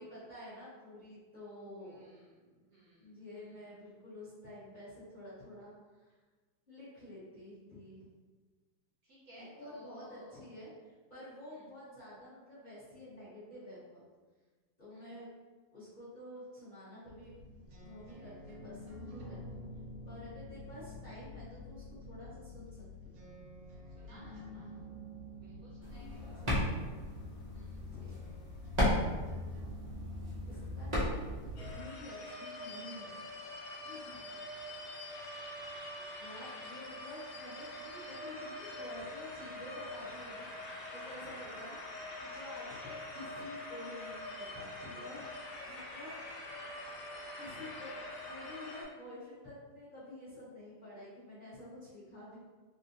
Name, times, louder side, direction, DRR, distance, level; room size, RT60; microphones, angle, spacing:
voice 1, 0.0-2.0 3.0-6.1 6.7-8.0 9.4-14.0 14.8-15.3 15.7-17.3 17.8-19.6 20.0-23.3 26.3-26.9 27.9-28.3 30.5-31.3 31.6-33.2 33.8-34.2 36.2-40.5 40.9-45.3 45.6-46.1 47.4-47.9 48.2-52.4, left 1 dB, 30° left, -12 dB, 1.2 m, -50 dB
voice 2, 1.8-3.5 9.0-10.4 11.5-11.6 14.9-15.1 24.0-24.8 25.4-26.2 27.5-27.9 34.1-34.3, equal, 60° right, -7 dB, 1.3 m, -59 dB
sound 1, 17.0-31.5, equal, 85° right, 1.3 m, -49 dB
sound 2, 25.8-31.8, left 1 dB, 35° right, 0.7 m, -35 dB
sound 3, 31.6-48.8, left 1 dB, 65° left, 1.3 m, -45 dB
3.5 x 2.5 x 2.8 m, 1.3 s
omnidirectional pair, 2.0 m